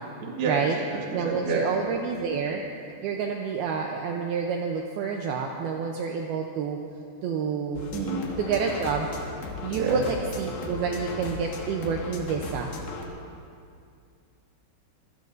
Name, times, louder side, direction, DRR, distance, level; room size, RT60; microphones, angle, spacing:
voice 1, 0.2-1.7 7.9-8.2 9.7-10.0, right 4 dB, 45° right, -2 dB, 1.9 m, -29 dB
voice 2, 1.1-2.6 3.0-6.8 7.2-7.9 8.4-9.1 9.6-12.7, right 6 dB, 85° right, 1 dB, 2.3 m, -28 dB
sound 1, 7.8-13.1, left 3 dB, 65° left, 2.7 m, -36 dB
25.0 x 18.0 x 2.7 m, 2.3 s
omnidirectional pair, 5.4 m